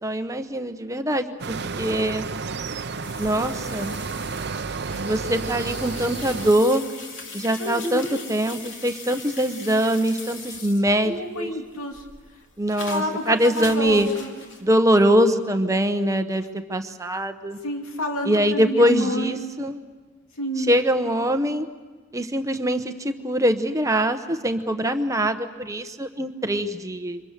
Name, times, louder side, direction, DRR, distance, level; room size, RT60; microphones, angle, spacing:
voice 1, 0.0-2.3 3.2-3.9 5.0-6.9 7.3-11.5 12.6-14.1 14.6-17.6 18.2-19.8 20.6-21.7 22.1-27.2, equal, 15° right, 8 dB, 0.9 m, -23 dB
sound 1, 1.4-6.5, right 4 dB, 50° right, 0.7 m, -31 dB
sound 2, 3.0-11.2 11.6-14.6, left 4 dB, 60° left, 2.9 m, -40 dB
voice 2, 7.6-8.2 11.0-12.0 12.9-14.3 17.6-19.5 20.4-20.8, equal, 90° left, 3 dB, 2.7 m, -29 dB
28.5 x 25.0 x 6.7 m, 1.3 s
head